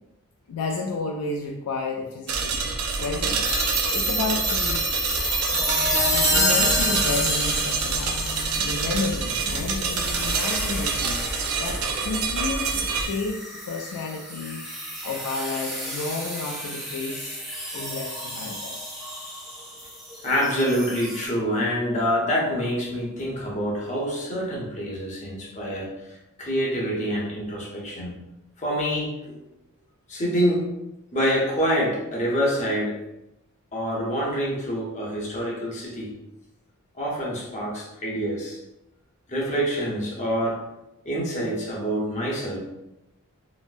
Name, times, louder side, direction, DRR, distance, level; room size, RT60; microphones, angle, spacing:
voice 1, 0.5-2.6 3.0-4.9 6.1-8.2 8.6-11.2 11.6-14.7 15.0-17.4 17.7-18.9, left 3 dB, 80° left, 0 dB, 0.4 m, -31 dB
sound 1, 2.3-13.1, right 4 dB, 80° right, 0.5 m, -27 dB
sound 2, 3.4-21.3, equal, ahead, 0.7 m, -29 dB
voice 2, 20.2-28.1 28.6-29.4 30.1-30.7 31.1-33.0 33.7-36.1 36.9-38.6 39.3-40.6 41.0-42.6, equal, 35° left, -4 dB, 0.8 m, -26 dB
3.9 x 2.0 x 2.5 m, 0.92 s
head